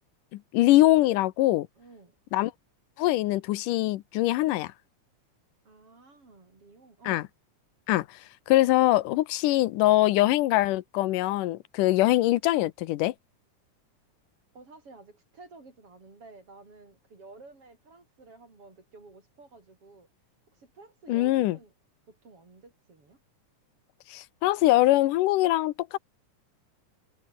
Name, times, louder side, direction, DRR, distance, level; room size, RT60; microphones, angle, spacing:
voice 1, 0.3-1.7 2.3-2.5 3.0-4.7 7.1-7.2 7.9-8.2 8.5-13.1 21.1-21.6 24.1-26.0, left 16 dB, 90° left, 2.4 m, -23 dB
voice 2, 1.8-2.1 5.6-7.3 14.5-20.1 20.5-21.7 22.1-23.2, right 3 dB, 45° right, 6.7 m, -52 dB
omnidirectional pair, 3.6 m